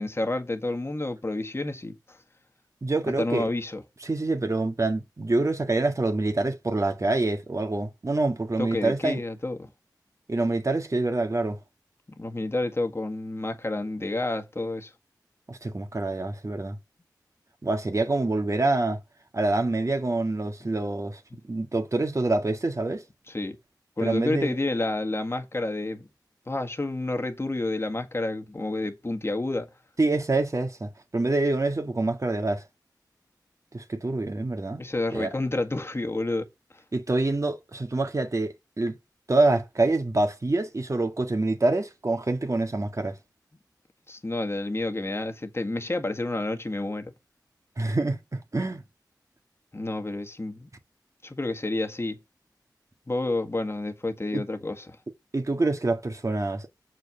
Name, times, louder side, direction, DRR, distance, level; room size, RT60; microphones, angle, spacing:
voice 1, 0.0-2.2 3.2-3.8 8.6-9.7 12.2-14.9 20.6-20.7 21.3-21.4 23.3-23.6 24.0-26.1 26.5-29.7 34.8-36.5 44.1-47.1 49.7-50.7 51.2-52.2 53.1-55.0, left 2 dB, 35° left, 1.6 m, -29 dB
voice 2, 2.8-3.5 4.0-9.2 10.3-11.6 15.5-16.8 17.6-19.0 19.3-23.0 24.0-24.5 30.0-32.6 33.7-34.8 35.1-35.3 36.9-38.9 39.3-43.2 47.8-48.8 54.3-54.4 55.3-56.7, right 2 dB, 45° right, 1.8 m, -26 dB
6.9 x 4.7 x 7.0 m
cardioid pair, 45°, 8 cm